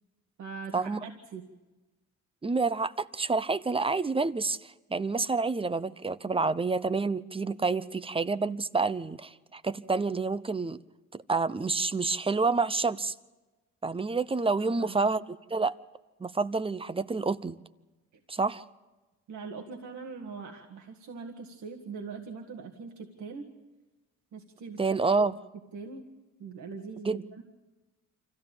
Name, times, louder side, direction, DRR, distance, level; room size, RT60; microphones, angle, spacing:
voice 1, 0.4-1.4 14.6-15.1 19.3-23.5 24.3-25.0 25.7-26.0 26.4-27.4, right 5 dB, 70° right, 2.0 m, -42 dB
voice 2, 2.4-10.8 11.1-13.1 13.8-15.2 15.5-15.7 16.2-17.6 18.3-18.6 24.8-25.3 27.1-27.2, right 4 dB, 20° right, 0.7 m, -28 dB
25.5 x 15.0 x 8.8 m
cardioid pair, 90°, 30 cm